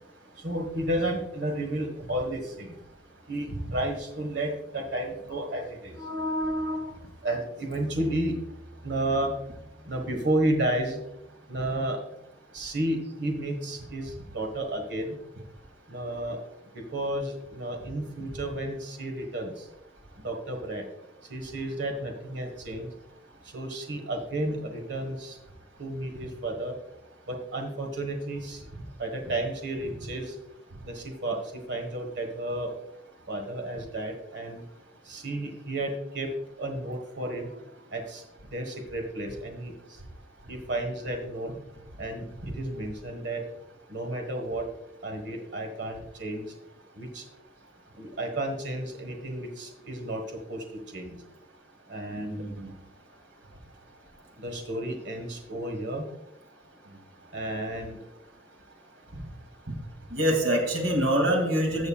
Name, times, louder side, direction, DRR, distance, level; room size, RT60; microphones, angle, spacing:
voice 1, 0.3-2.7 3.3-8.4 8.8-9.3 9.8-11.0 11.5-12.0 12.5-15.2 15.9-16.4 16.7-19.7 20.2-20.8 21.3-22.9 23.5-25.4 25.8-26.7 27.3-28.6 29.0-30.3 30.8-32.7 33.3-34.6 35.0-36.3 36.6-37.5 37.9-38.2 38.5-39.7 40.5-41.5 42.0-42.3 42.5-43.4 43.9-44.6 45.0-46.5 46.9-47.2 48.0-50.6 50.9-51.2 51.9-52.4 54.4-56.1 57.3-58.0, right 1 dB, 70° right, 3 dB, 1.4 m, -32 dB
voice 2, 52.1-52.7 60.1-61.9, equal, 85° right, 2 dB, 2.5 m, -25 dB
14.0 x 6.8 x 2.4 m, 0.85 s
head